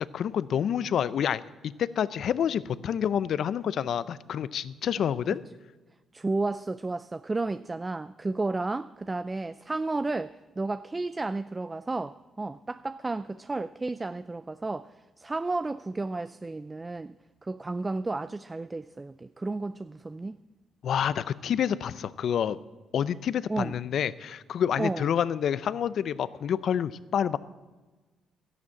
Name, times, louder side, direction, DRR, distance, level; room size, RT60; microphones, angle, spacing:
voice 1, 0.1-5.4 20.8-22.6 22.9-27.4, left 8 dB, 65° left, 0.5 m, -28 dB
voice 2, 6.1-17.1 17.4-20.4 23.5-23.7 24.8-25.1, right 3 dB, 20° right, 0.4 m, -32 dB
13.0 x 11.0 x 7.3 m
cardioid pair, 90°, 0 cm